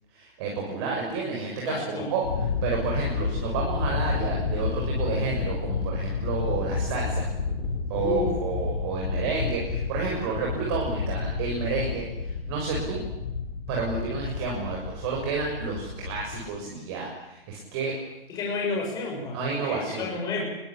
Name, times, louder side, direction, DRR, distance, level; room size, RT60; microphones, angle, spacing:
voice 1, 0.1-7.3 7.9-13.0 13.7-17.9 19.3-20.1, right 4 dB, 25° right, -1 dB, 6.6 m, -30 dB
voice 2, 1.6-2.1 7.9-8.3 18.3-20.5, left 3 dB, 15° left, -1 dB, 6.2 m, -31 dB
Thunder, 2.2-16.4, left 5 dB, 70° left, 6.9 m, -30 dB
28.5 x 22.0 x 8.8 m, 0.93 s
hypercardioid pair, 170°, 29 cm